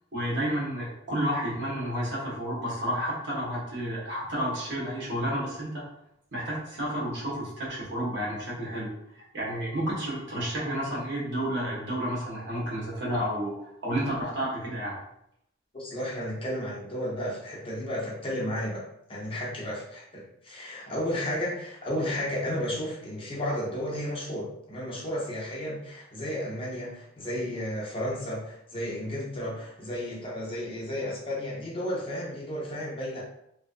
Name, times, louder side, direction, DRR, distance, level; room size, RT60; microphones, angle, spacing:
voice 1, 0.1-5.8 6.3-13.5 13.8-15.0, equal, 65° right, -6 dB, 1.1 m, -31 dB
voice 2, 15.7-18.8 19.1-33.2, equal, 30° left, -5 dB, 0.7 m, -33 dB
2.6 x 2.3 x 2.4 m, 0.76 s
head